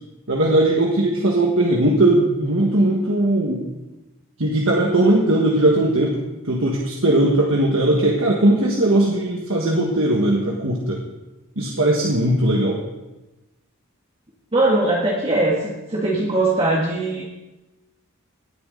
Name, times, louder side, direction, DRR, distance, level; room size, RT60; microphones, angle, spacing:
voice 1, 0.3-3.6 4.4-6.2 6.4-11.0 11.6-12.8, right 1 dB, 65° right, -1 dB, 1.5 m, -19 dB
voice 2, 14.5-17.2, right 2 dB, 25° right, -4 dB, 1.6 m, -20 dB
18.5 x 9.8 x 3.9 m, 1.0 s
head